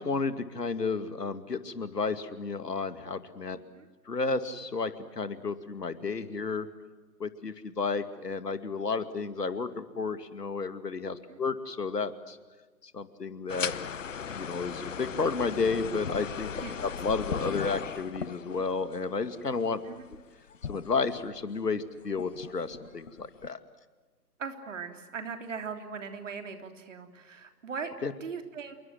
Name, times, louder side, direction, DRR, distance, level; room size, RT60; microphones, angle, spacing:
voice 1, 0.0-3.6 4.1-6.7 7.2-12.4 12.8-13.7 14.3-16.5 16.8-19.8 20.7-23.6 28.0-28.1, left 4 dB, 70° left, 11 dB, 2.5 m, -32 dB
sound 1, 13.5-21.5 22.0-23.5, left 7 dB, 50° left, 1.1 m, -38 dB
voice 2, 24.4-27.9 28.2-28.7, right 5 dB, 50° right, 6 dB, 3.4 m, -39 dB
28.0 x 23.5 x 7.8 m, 1.3 s
figure-of-eight pair, 145°, 49 cm